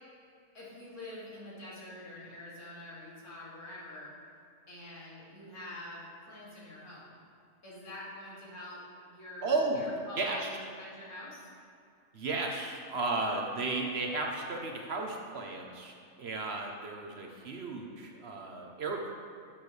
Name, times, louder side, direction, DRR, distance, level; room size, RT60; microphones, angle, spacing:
voice 1, 0.5-4.1 4.7-7.2 7.6-11.5, left 1 dB, 85° left, -8 dB, 3.1 m, -46 dB
voice 2, 9.4-9.9 10.2-10.5 12.1-19.1, right 3 dB, 55° right, 1 dB, 0.9 m, -34 dB
11.0 x 7.4 x 3.2 m, 2.5 s
omnidirectional pair, 1.5 m